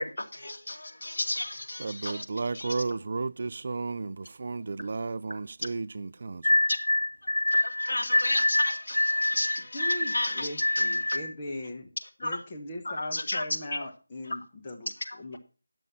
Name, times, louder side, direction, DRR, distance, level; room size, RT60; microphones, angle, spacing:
voice 1, 0.0-2.2 2.6-2.7 7.5-11.2 12.2-12.4 12.8-13.4 15.1-15.4, left 1 dB, 55° left, 2.2 m, -33 dB
voice 2, 1.8-6.6, right 3 dB, 40° right, 0.4 m, -33 dB
sound 1, 6.4-11.3, left 1 dB, 85° left, 0.5 m, -26 dB
voice 3, 9.7-11.9 12.2-14.9 15.2-15.4, left 1 dB, 20° left, 1.2 m, -39 dB
10.5 x 7.0 x 5.8 m
figure-of-eight pair, 170°, 0 cm